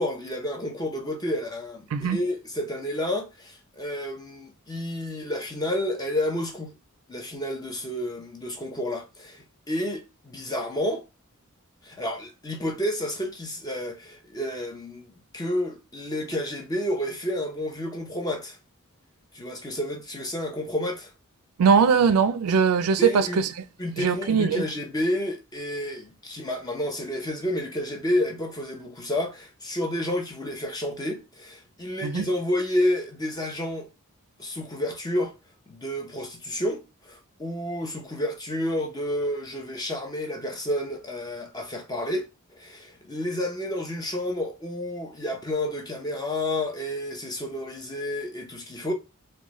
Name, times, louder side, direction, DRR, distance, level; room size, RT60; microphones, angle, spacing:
voice 1, 0.0-6.7 7.1-11.0 11.8-18.6 19.3-21.1 23.0-23.4 23.8-33.9 34.4-35.3 35.7-42.3 42.5-48.9, left 1 dB, 20° left, 0.7 m, -30 dB
voice 2, 21.6-23.5 24.0-24.6 32.0-32.3, right 6 dB, 90° right, 0.4 m, -21 dB
3.8 x 2.3 x 3.0 m
head